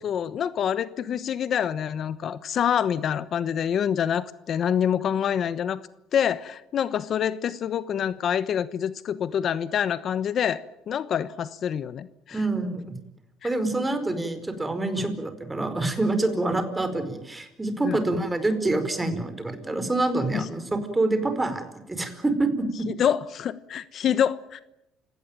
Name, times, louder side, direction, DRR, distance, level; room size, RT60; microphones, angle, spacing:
voice 1, 0.0-5.8 6.1-12.4 13.4-13.5 14.9-15.1 17.8-18.0 20.3-20.5 23.0-24.6, left 9 dB, 55° left, 15 dB, 1.1 m, -26 dB
voice 2, 12.3-13.0 13.4-22.9, right 2 dB, 15° right, 9 dB, 4.9 m, -26 dB
29.5 x 18.0 x 9.1 m, 0.87 s
cardioid pair, 100°, 0 cm